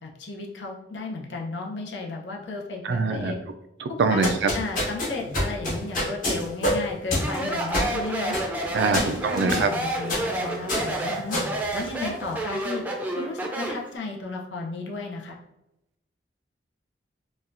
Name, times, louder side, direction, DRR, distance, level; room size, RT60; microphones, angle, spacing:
voice 1, 0.0-3.4 4.1-4.2 4.5-8.3 8.9-11.4 11.7-12.8 13.2-15.4, left 3 dB, 85° left, 0 dB, 0.7 m, -34 dB
voice 2, 2.8-3.3 3.8-4.5 8.7-9.7, right 4 dB, 75° right, 8 dB, 0.4 m, -23 dB
sound 1, 4.0-12.4, left 1 dB, 50° left, 1.1 m, -29 dB
Speech, 7.1-13.9, right 1 dB, 10° right, 0.5 m, -30 dB
4.1 x 2.3 x 2.6 m, 0.85 s
head